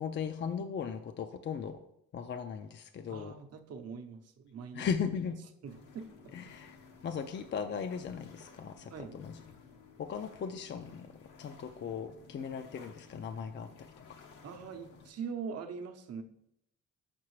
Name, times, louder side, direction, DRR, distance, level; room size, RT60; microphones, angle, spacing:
voice 1, 0.0-1.8 2.1-3.3 4.8-5.3 6.3-6.8 7.0-9.4 10.0-11.1 11.4-13.9, left 7 dB, 40° left, 7 dB, 0.4 m, -37 dB
voice 2, 3.1-5.0 5.6-6.3 8.9-9.2 14.4-16.2, right 6 dB, 55° right, 5 dB, 0.7 m, -43 dB
sound 1, 5.6-15.1, left 5 dB, 80° left, 1.0 m, -56 dB
5.9 x 5.7 x 3.2 m, 0.79 s
cardioid pair, 90°, 30 cm